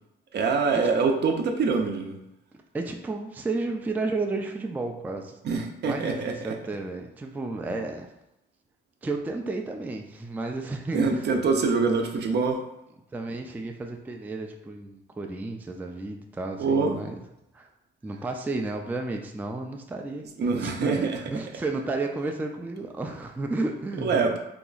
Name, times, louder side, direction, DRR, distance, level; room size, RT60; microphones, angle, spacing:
voice 1, 0.3-2.2 5.4-6.6 10.9-12.6 16.6-17.0 20.4-21.2 24.0-24.4, right 4 dB, 60° right, 3 dB, 0.6 m, -24 dB
voice 2, 2.7-5.4 5.8-8.1 9.0-11.3 13.1-17.1 17.5-17.7 18.0-24.4, right 3 dB, 10° right, 3 dB, 0.3 m, -32 dB
2.9 x 2.3 x 3.9 m, 0.87 s
cardioid pair, 90°, 20 cm